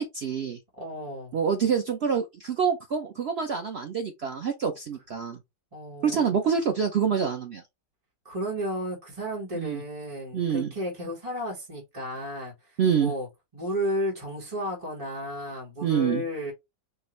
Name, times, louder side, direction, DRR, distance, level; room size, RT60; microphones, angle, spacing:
voice 1, 0.0-0.6 1.3-5.4 6.0-7.6 9.5-9.8 10.3-10.7 12.8-13.1 15.8-16.2, right 7 dB, 85° right, 0.5 m, -26 dB
voice 2, 0.8-1.3 5.7-6.4 8.2-13.3 13.5-16.5, equal, 20° right, 1.4 m, -33 dB
4.6 x 2.6 x 3.1 m
omnidirectional pair, 1.9 m